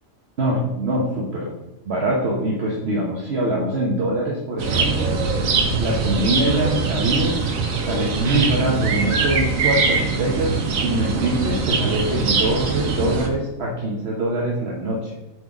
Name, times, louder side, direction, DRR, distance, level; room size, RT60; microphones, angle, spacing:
voice 1, 0.4-1.5 1.9-5.2 5.8-7.4 7.9-15.1, right 1 dB, 55° right, -2 dB, 1.2 m, -23 dB
sound 1, 4.6-13.3, right 4 dB, 80° right, 1.4 m, -22 dB
7.8 x 4.0 x 4.9 m, 0.98 s
omnidirectional pair, 1.4 m